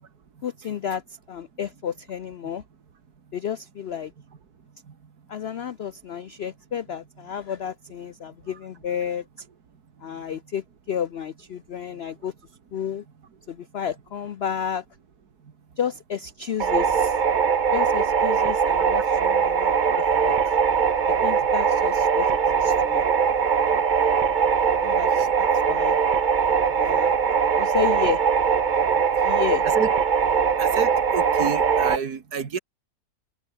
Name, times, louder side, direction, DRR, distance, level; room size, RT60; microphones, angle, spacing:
voice 1, 0.4-2.6 3.3-4.1 5.3-9.5 10.0-12.3 12.7-13.0 13.5-14.8 15.8-17.2 17.7-20.6 21.1-23.0 24.8-26.0 26.8-27.1 27.5-28.2 29.2-29.6, left 8 dB, 75° left, 0.5 m, -31 dB
sound 1, 16.6-32.0, right 6 dB, 40° right, 0.7 m, -21 dB
voice 2, 30.6-32.6, right 6 dB, 60° right, 2.3 m, -30 dB
omnidirectional pair, 1.9 m